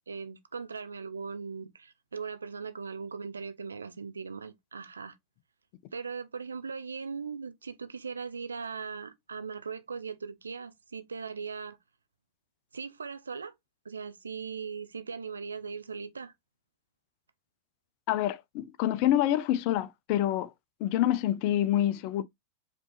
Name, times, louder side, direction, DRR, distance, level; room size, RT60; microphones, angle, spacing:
voice 1, 0.1-5.2 5.9-11.8 12.7-13.5 13.8-16.3, right 5 dB, 75° right, 0.6 m, -39 dB
voice 2, 18.1-20.5 20.8-22.2, left 12 dB, 45° left, 0.5 m, -27 dB
5.1 x 3.1 x 3.1 m
figure-of-eight pair, 90°, 0 cm